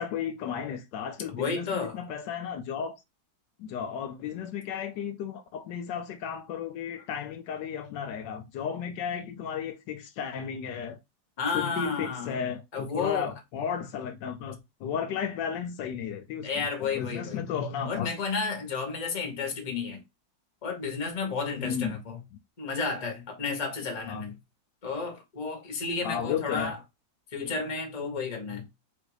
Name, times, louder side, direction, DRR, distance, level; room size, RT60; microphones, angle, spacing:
voice 1, 0.0-2.9 3.6-11.0 11.5-18.1 21.5-22.0 24.1-24.2 26.0-26.7, left 8 dB, 75° left, 1.2 m, -34 dB
voice 2, 1.3-2.0 11.4-12.3 12.7-13.3 16.4-17.4 17.9-20.0 20.6-22.2 22.6-24.4 24.8-26.8 27.3-28.7, left 4 dB, 30° left, 0.9 m, -32 dB
3.9 x 2.5 x 4.7 m
omnidirectional pair, 2.0 m